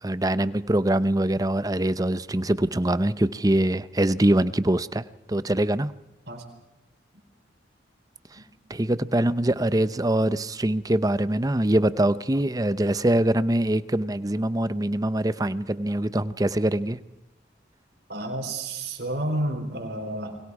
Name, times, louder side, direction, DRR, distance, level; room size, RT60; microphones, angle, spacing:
voice 1, 0.0-5.9 8.3-8.4 8.7-17.0, right 1 dB, 20° right, 14 dB, 0.7 m, -23 dB
voice 2, 18.1-20.4, right 1 dB, 60° right, 4 dB, 4.3 m, -30 dB
29.5 x 22.5 x 4.9 m, 0.98 s
head